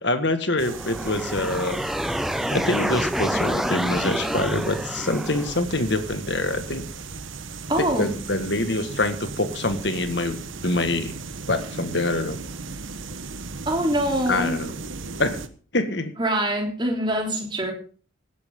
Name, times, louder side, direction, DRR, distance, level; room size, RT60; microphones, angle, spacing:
voice 1, 0.0-1.8 2.5-6.8 7.8-10.4 10.6-11.2 11.5-12.4 14.3-14.7 15.2-15.4 15.7-16.1, left 2 dB, 60° left, 9 dB, 1.8 m, -25 dB
sound 1, 0.6-5.6, equal, ahead, 0.6 m, -28 dB
sound 2, 0.6-15.5, right 4 dB, 80° right, 1.2 m, -36 dB
voice 2, 7.7-8.1 13.7-14.5 16.2-17.7, right 1 dB, 25° right, 1 dB, 3.4 m, -24 dB
18.0 x 10.5 x 3.8 m, 0.40 s
head